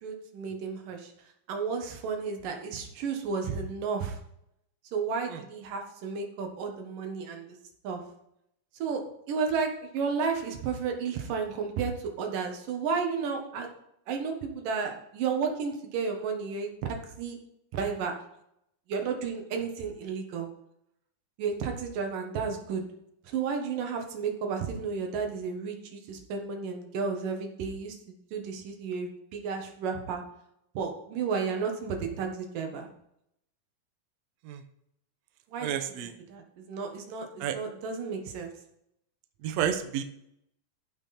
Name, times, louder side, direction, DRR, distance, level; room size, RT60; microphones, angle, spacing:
voice 1, 0.0-1.1 1.5-4.2 4.9-7.6 7.8-8.0 8.8-13.7 14.1-17.4 17.7-18.1 18.9-20.5 21.4-22.8 23.2-30.2 30.7-32.9 35.5-35.7 36.3-38.5, right 5 dB, 90° right, 3 dB, 3.1 m, -32 dB
voice 2, 35.6-36.1 37.4-37.6 39.4-40.0, right 9 dB, 70° right, 7 dB, 1.8 m, -30 dB
14.5 x 5.8 x 4.3 m, 0.77 s
omnidirectional pair, 3.7 m